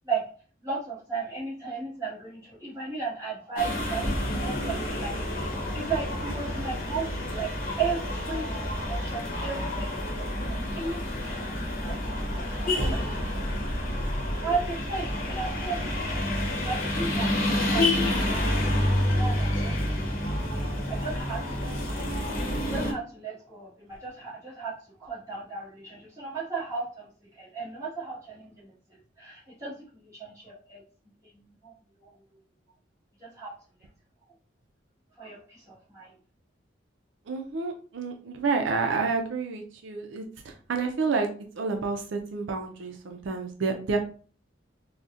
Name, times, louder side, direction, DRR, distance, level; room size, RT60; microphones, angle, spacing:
voice 1, 0.6-5.1 5.7-7.5 7.8-8.5 8.9-10.1 10.5-12.2 12.6-13.0 13.8-13.9 14.2-15.8 16.6-20.1 20.9-21.7 22.6-24.7 25.0-27.1 27.3-30.8 31.6-31.7 32.0-32.1 33.2-33.5 35.2-36.1, right 5 dB, 15° right, -8 dB, 1.4 m, -35 dB
sound 1, 3.6-22.9, left 1 dB, 45° left, 0.9 m, -29 dB
voice 2, 37.3-41.3 41.6-44.0, right 4 dB, 75° right, 4 dB, 0.4 m, -29 dB
3.9 x 2.1 x 2.4 m, 0.40 s
head